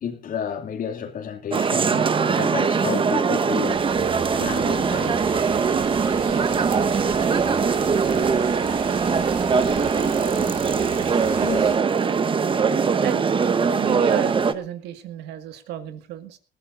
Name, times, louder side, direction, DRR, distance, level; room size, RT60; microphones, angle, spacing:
voice 1, 0.0-3.8 4.4-5.3 11.4-11.6, left 7 dB, 55° left, 2.6 m, -31 dB
sound 1, 1.5-14.5, right 5 dB, 30° right, 1.1 m, -21 dB
sound 2, 3.7-11.7, right 6 dB, 60° right, 5.9 m, -38 dB
voice 2, 13.8-16.4, right 12 dB, 85° right, 2.0 m, -32 dB
21.0 x 14.5 x 2.7 m
cardioid pair, 110°, 17 cm